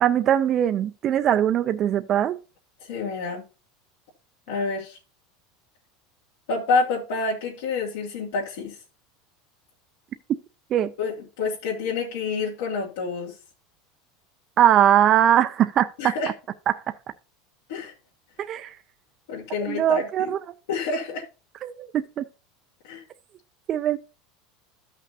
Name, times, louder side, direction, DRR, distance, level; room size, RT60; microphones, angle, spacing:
voice 1, 0.0-2.4 10.7-10.9 14.6-16.1 16.9-17.0 18.4-18.7 19.7-20.4 21.6-22.2 23.7-24.0, right 10 dB, 25° right, 0.3 m, -21 dB
voice 2, 2.8-3.4 4.5-5.0 6.5-8.8 11.0-13.4 16.0-16.3 17.7-17.9 19.3-20.3 20.7-21.2 22.8-23.0, left 4 dB, 80° left, 2.4 m, -28 dB
13.5 x 5.8 x 2.7 m
supercardioid pair, 180°, 0 cm